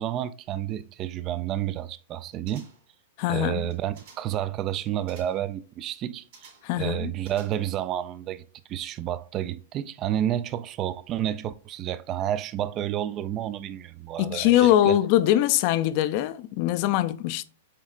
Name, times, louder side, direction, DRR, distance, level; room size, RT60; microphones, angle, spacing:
voice 1, 0.0-2.7 3.3-8.4 8.7-15.0, right 11 dB, 35° right, 0.3 m, -30 dB
sound 1, 2.5-3.0 3.6-4.4 5.1-5.5 6.3-6.8 7.2-7.9 8.2-8.3, right 5 dB, 65° right, 2.2 m, -53 dB
voice 2, 3.2-3.7 6.6-7.1 14.2-17.4, left 13 dB, 50° left, 0.4 m, -22 dB
7.3 x 2.8 x 2.4 m
hypercardioid pair, 115°, 0 cm